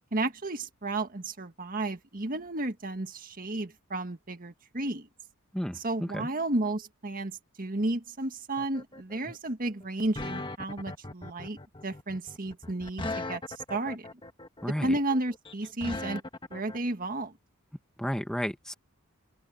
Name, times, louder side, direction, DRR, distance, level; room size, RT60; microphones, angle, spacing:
voice 1, 0.1-5.1 5.7-11.6 11.8-13.4 13.7-14.1 14.8-16.2 16.5-17.3, right 2 dB, 40° right, 1.7 m, -32 dB
voice 2, 5.5-6.3 14.6-14.9 18.0-18.7, equal, 5° left, 1.2 m, -32 dB
sound 1, 8.6-16.8, left 2 dB, 20° left, 1.6 m, -39 dB
head